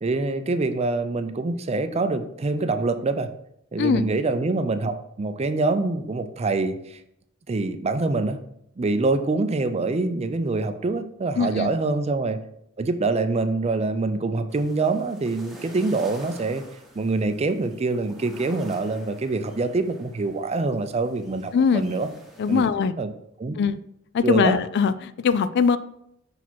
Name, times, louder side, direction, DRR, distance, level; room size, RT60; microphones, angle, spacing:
voice 1, 0.0-3.3 3.7-7.0 7.5-8.4 8.8-12.4 12.8-16.6 16.9-22.1 22.5-22.6 23.0-23.1 23.4-23.6 24.2-24.6, right 3 dB, 30° right, 9 dB, 0.4 m, -25 dB
voice 2, 3.8-4.1 11.4-11.7 21.5-21.8 22.4-22.9 23.6-23.8 24.1-25.8, left 6 dB, 55° left, 14 dB, 0.3 m, -21 dB
sound 1, 14.5-22.7, right 1 dB, ahead, 1.1 m, -48 dB
5.7 x 4.1 x 4.5 m, 0.75 s
head